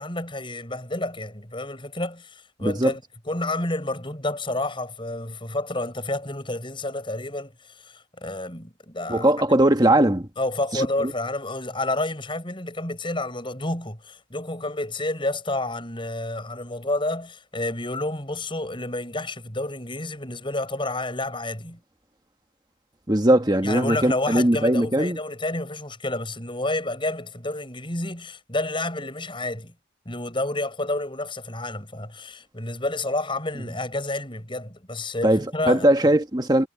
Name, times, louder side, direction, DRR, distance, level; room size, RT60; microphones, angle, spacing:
voice 1, 0.0-9.3 10.4-21.8 23.6-29.7 30.1-36.1, left 2 dB, 25° left, 7.8 m, -30 dB
voice 2, 2.6-2.9 9.1-10.3 10.7-11.1 23.1-25.2 35.2-36.7, right 1 dB, 20° right, 1.5 m, -20 dB
head